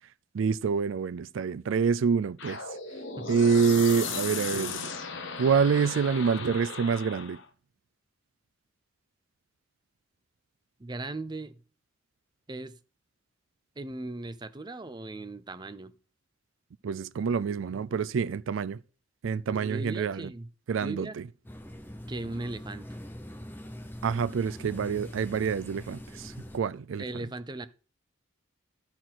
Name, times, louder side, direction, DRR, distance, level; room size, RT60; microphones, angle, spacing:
voice 1, 0.3-2.6 3.3-4.9 5.4-7.4 16.8-18.8 19.2-20.3 20.7-21.3 24.0-27.0, right 6 dB, 75° right, 0.4 m, -27 dB
sound 1, 2.4-7.4, left 5 dB, 65° left, 1.3 m, -36 dB
voice 2, 10.8-11.6 12.5-12.8 13.8-15.9 19.6-20.5 20.8-21.2 22.1-22.9 27.0-27.7, right 2 dB, 20° right, 0.6 m, -38 dB
sound 2, 21.4-26.6, equal, 10° left, 0.9 m, -43 dB
12.5 x 4.4 x 5.9 m
head